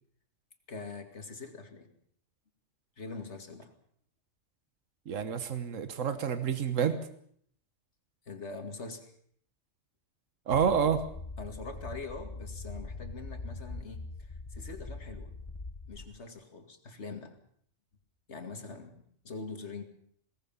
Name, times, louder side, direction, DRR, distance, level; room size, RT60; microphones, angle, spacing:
voice 1, 0.7-1.9 3.0-3.7 8.3-9.1 11.4-15.3 15.9-17.4 18.3-19.8, left 3 dB, 60° left, 6 dB, 2.6 m, -43 dB
voice 2, 5.1-6.9 10.5-11.0, right 7 dB, 85° right, 10 dB, 1.6 m, -28 dB
sound 1, 10.5-16.1, left 3 dB, 25° left, 1.0 m, -42 dB
21.5 x 18.0 x 7.2 m, 0.63 s
omnidirectional pair, 1.3 m